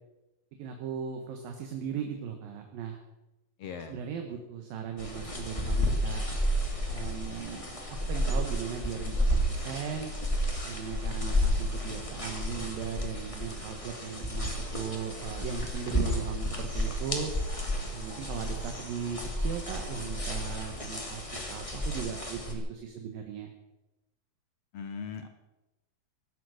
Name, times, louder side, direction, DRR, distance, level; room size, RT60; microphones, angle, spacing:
voice 1, 0.6-3.0 3.9-6.2 6.9-10.1 10.6-17.3 17.9-23.5, right 7 dB, 70° right, 4 dB, 3.0 m, -38 dB
voice 2, 3.6-4.0 24.7-25.3, left 6 dB, 70° left, 7 dB, 1.5 m, -39 dB
sound 1, 5.0-22.5, equal, 10° left, 1.7 m, -32 dB
17.5 x 12.0 x 6.5 m, 1.0 s
omnidirectional pair, 4.4 m